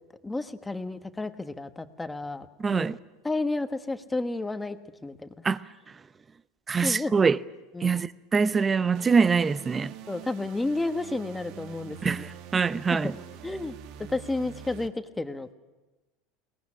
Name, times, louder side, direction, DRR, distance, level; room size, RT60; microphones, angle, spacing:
voice 1, 0.2-2.9 3.2-4.8 5.0-5.3 6.8-7.1 7.7-8.0 10.1-12.3 13.4-13.8 14.1-15.5, left 2 dB, 10° left, 1.3 m, -31 dB
voice 2, 2.6-3.0 5.4-5.6 6.7-7.4 7.8-9.9 12.0-13.2, right 5 dB, 20° right, 0.8 m, -24 dB
sound 1, 8.9-14.9, right 9 dB, 60° right, 1.3 m, -45 dB
22.5 x 19.0 x 9.8 m
supercardioid pair, 115°, 0 cm